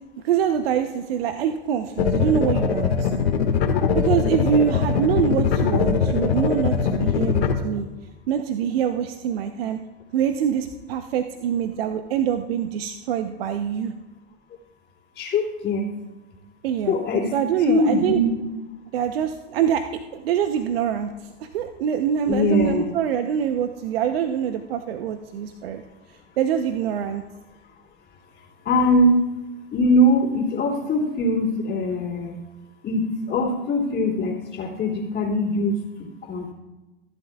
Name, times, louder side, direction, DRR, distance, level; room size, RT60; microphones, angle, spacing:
voice 1, 0.2-3.1 3.9-7.9 8.3-9.8 10.1-13.9 16.6-17.0 17.3-18.2 18.9-19.8 20.1-25.8 26.4-27.2, right 9 dB, 70° right, 7 dB, 0.9 m, -24 dB
sound 1, 2.0-7.5, left 6 dB, 75° left, 1.9 m, -21 dB
voice 2, 15.2-15.9 16.9-17.3 17.7-18.3 22.3-22.8 28.6-29.2 29.7-32.4 32.8-35.7 36.2-36.5, left 1 dB, 30° left, -6 dB, 3.0 m, -21 dB
24.0 x 12.0 x 2.4 m, 1.1 s
hypercardioid pair, 95°, 31 cm